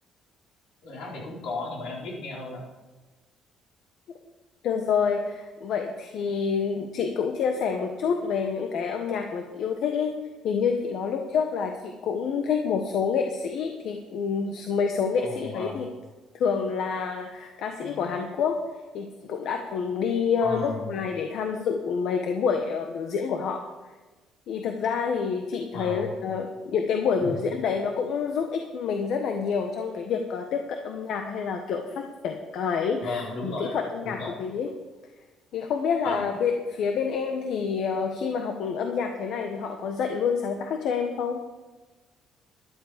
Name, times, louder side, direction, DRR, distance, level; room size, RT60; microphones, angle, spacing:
voice 1, 0.8-2.6 15.2-15.9 20.4-20.9 25.7-26.1 27.2-27.3 33.0-33.8 34.0-34.4 36.0-36.3, left 3 dB, 80° left, -3 dB, 4.6 m, -35 dB
voice 2, 4.6-10.1 10.4-15.9 16.3-18.6 18.9-23.6 24.5-34.7 35.5-41.4, left 6 dB, 60° left, 4 dB, 1.2 m, -28 dB
13.0 x 11.0 x 5.1 m, 1.2 s
cardioid pair, 150°, 0 cm